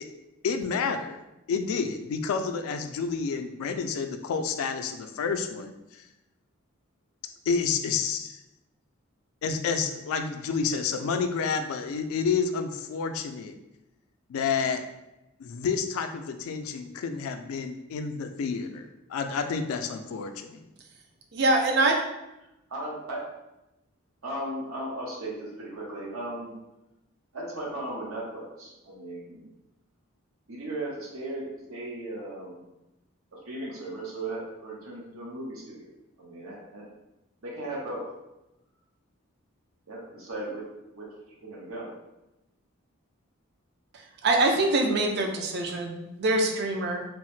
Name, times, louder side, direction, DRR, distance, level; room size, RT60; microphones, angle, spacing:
voice 1, 0.4-1.2 1.5-6.0 7.5-8.4 9.4-13.5 14.3-14.8 15.4-20.7, left 5 dB, 90° left, 7 dB, 0.3 m, -29 dB
voice 2, 21.3-22.0 43.9-47.1, right 2 dB, 50° right, 3 dB, 0.4 m, -24 dB
voice 3, 22.7-23.2 24.2-26.6 27.3-29.4 30.5-32.6 33.3-35.9 36.2-36.8 37.4-38.1 39.9-40.6 40.9-41.1 41.4-41.9, right 1 dB, 90° right, -3 dB, 0.8 m, -36 dB
3.0 x 2.0 x 3.1 m, 0.94 s
head